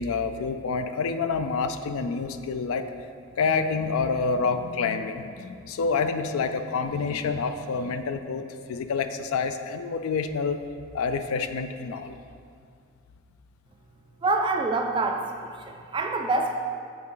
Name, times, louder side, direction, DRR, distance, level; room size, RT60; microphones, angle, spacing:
voice 1, 0.0-2.9 3.4-8.4 8.7-10.6 10.9-12.2, left 5 dB, 85° left, 9 dB, 0.4 m, -27 dB
voice 2, 14.2-16.6, right 3 dB, 25° right, 3 dB, 0.3 m, -26 dB
8.6 x 3.5 x 3.8 m, 2.2 s
head